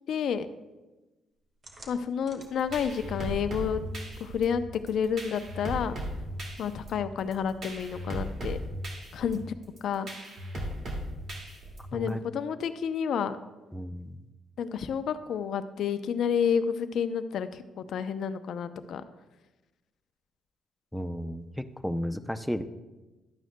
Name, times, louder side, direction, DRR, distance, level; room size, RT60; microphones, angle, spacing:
voice 1, 0.1-0.5 1.9-3.8 4.2-5.9 6.6-8.6 9.1-9.4 9.8-10.1 11.9-13.4 14.6-19.0, left 7 dB, 70° left, 10 dB, 0.5 m, -30 dB
sound 1, 1.6-8.8, right 2 dB, 40° right, 1.5 m, -48 dB
sound 2, 2.4-12.1, equal, 55° right, 2.1 m, -37 dB
voice 2, 13.7-14.2 20.9-22.6, equal, ahead, 9 dB, 0.5 m, -33 dB
12.5 x 9.1 x 2.2 m, 1.1 s
cardioid pair, 90°, 0 cm